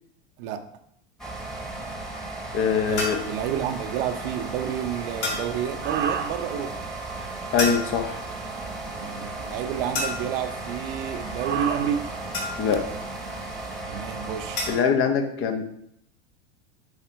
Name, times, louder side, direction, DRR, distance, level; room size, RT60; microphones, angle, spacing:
voice 1, 0.4-0.7 2.9-6.9 9.0-12.2 13.9-14.7, right 9 dB, 55° right, 0.9 m, -30 dB
sound 1, 1.2-14.8, right 2 dB, ahead, 1.3 m, -35 dB
voice 2, 2.5-3.2 7.5-8.2 12.6-12.9 14.7-15.6, left 6 dB, 40° left, 1.0 m, -23 dB
sound 2, 2.9-13.8, right 7 dB, 30° right, 0.9 m, -38 dB
sound 3, 3.0-3.4 5.2-5.6 7.6-8.2 9.9-10.5 12.3-12.9 14.6-14.9, left 3 dB, 80° left, 2.5 m, -30 dB
8.3 x 3.6 x 4.6 m
hypercardioid pair, 115°, 33 cm